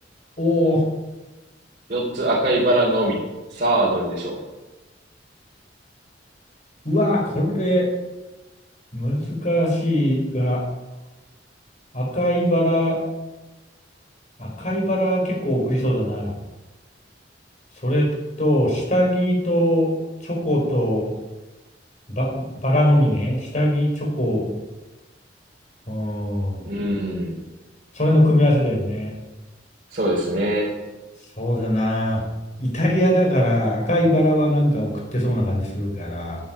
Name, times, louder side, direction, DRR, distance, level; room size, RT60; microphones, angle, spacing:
voice 1, 0.4-0.8 6.8-7.9 8.9-10.6 11.9-13.0 14.4-16.3 17.8-18.1 18.4-19.9 20.2-21.1 22.2-24.5 25.9-26.7 27.9-29.1 31.4-32.2 32.6-36.4, equal, 40° left, -1 dB, 5.2 m, -21 dB
voice 2, 1.9-3.2 3.5-4.3 26.6-27.3 29.9-30.7, right 1 dB, 45° right, -6 dB, 4.0 m, -22 dB
11.0 x 9.7 x 8.9 m, 1.1 s
head